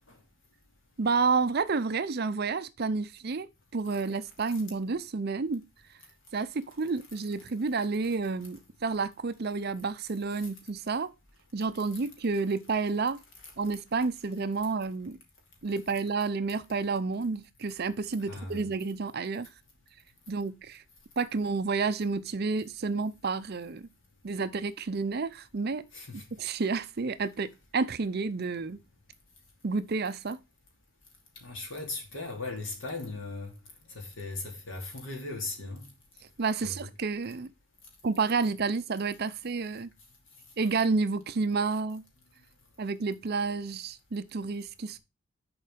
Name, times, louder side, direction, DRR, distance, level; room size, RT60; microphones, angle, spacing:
voice 1, 1.0-5.6 5.9-6.0 6.3-11.1 11.5-13.2 13.6-15.2 15.6-19.5 20.3-20.8 21.2-23.9 24.2-25.8 26.1-27.5 27.7-28.8 29.6-30.4 36.4-37.5 38.0-39.9 40.6-42.0 42.8-45.0, right 4 dB, 45° right, 0.5 m, -30 dB
voice 2, 18.3-18.6 25.9-26.2 31.4-33.5 33.9-35.8 36.6-36.7, left 3 dB, 60° left, 2.7 m, -38 dB
7.1 x 4.6 x 5.0 m
head